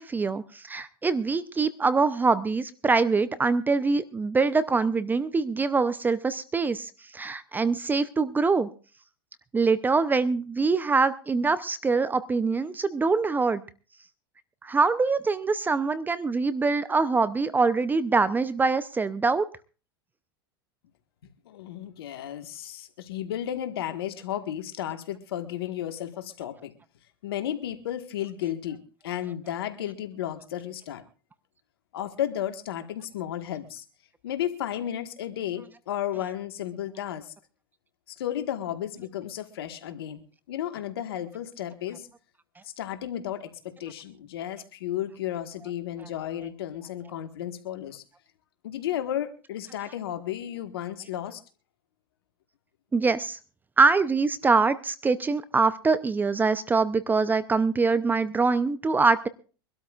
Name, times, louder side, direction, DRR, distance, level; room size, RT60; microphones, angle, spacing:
voice 1, 0.0-8.7 9.5-13.6 14.6-19.5 52.9-53.4 53.8-59.3, right 4 dB, 15° right, 14 dB, 0.7 m, -24 dB
voice 2, 21.4-26.7 27.2-31.0 31.9-33.8 34.2-37.3 38.1-40.2 40.5-42.1 42.6-48.0 48.6-51.4, left 11 dB, 80° left, 8 dB, 1.6 m, -33 dB
24.5 x 12.5 x 2.5 m, 0.36 s
hypercardioid pair, 110°, 12 cm